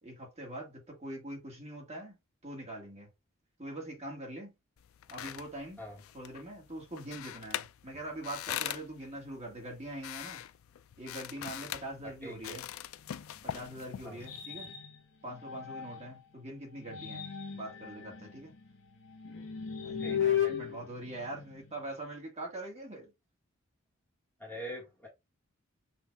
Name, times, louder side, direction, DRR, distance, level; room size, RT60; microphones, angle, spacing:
voice 1, 0.0-3.1 3.6-4.5 5.1-5.8 6.1-10.4 11.0-12.7 13.4-14.7 15.2-18.5 19.8-23.1, right 1 dB, 30° right, 1.8 m, -43 dB
sound 1, 4.8-14.5, left 11 dB, 75° left, 0.3 m, -43 dB
voice 2, 12.2-12.6 14.0-14.2 20.0-20.4 24.4-25.1, equal, 10° left, 1.4 m, -44 dB
sound 2, 13.1-16.2 16.7-21.9, left 9 dB, 60° left, 1.3 m, -37 dB
5.8 x 2.7 x 3.5 m
head